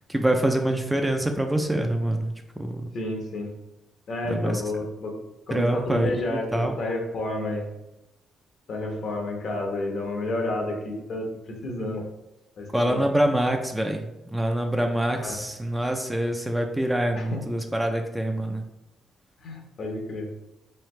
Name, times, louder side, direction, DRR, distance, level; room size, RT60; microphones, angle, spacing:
voice 1, 0.1-2.3 2.6-2.8 4.3-4.6 5.5-6.7 12.7-18.6, right 1 dB, 10° right, 4 dB, 0.4 m, -25 dB
voice 2, 2.9-3.5 4.1-5.2 5.5-7.7 8.7-11.3 11.6-12.0 12.6-13.1 15.2-15.4 17.1-17.4 19.4-20.3, left 2 dB, 60° left, 1 dB, 1.0 m, -30 dB
3.6 x 3.3 x 3.2 m, 0.93 s
cardioid pair, 90°, 0 cm